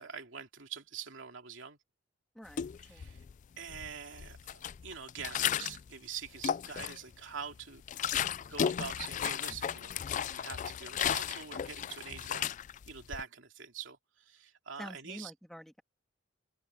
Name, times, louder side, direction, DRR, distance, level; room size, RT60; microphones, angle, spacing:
voice 1, 0.0-1.8 2.8-3.2 3.6-7.8 8.5-12.5 12.9-15.3, right 6 dB, 80° right, 2.8 m, -45 dB
voice 2, 2.3-3.1 8.2-8.4 14.8-15.8, equal, ahead, 2.9 m, -48 dB
sound 1, 2.5-3.3 3.7-5.9 6.3-7.2 7.5-13.2, left 9 dB, 40° left, 0.3 m, -35 dB
head